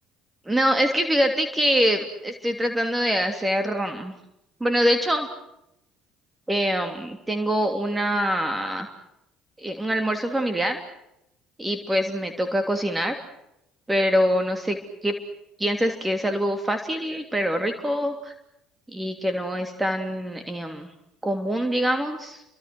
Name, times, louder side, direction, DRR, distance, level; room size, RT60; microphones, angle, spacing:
voice 1, 0.5-4.1 4.6-5.3 6.5-8.9 9.6-10.8 11.6-13.1 13.9-15.1 15.6-18.3 18.9-20.9 21.2-22.4, equal, 15° right, 6 dB, 3.1 m, -24 dB
30.0 x 25.0 x 6.2 m, 0.83 s
hypercardioid pair, 60°, 0 cm